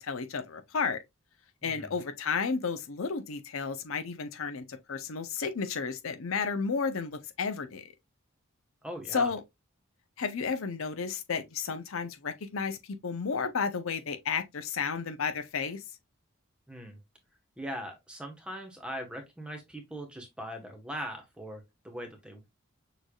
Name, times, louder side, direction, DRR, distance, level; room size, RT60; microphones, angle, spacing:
voice 1, 0.0-1.0 1.6-7.8 9.1-9.4 10.2-12.8 13.0-15.8, left 5 dB, 70° left, 0.6 m, -32 dB
voice 2, 1.6-2.0 8.8-9.3 16.7-17.0 17.6-22.5, equal, 5° right, 1.0 m, -40 dB
6.4 x 3.3 x 2.3 m
head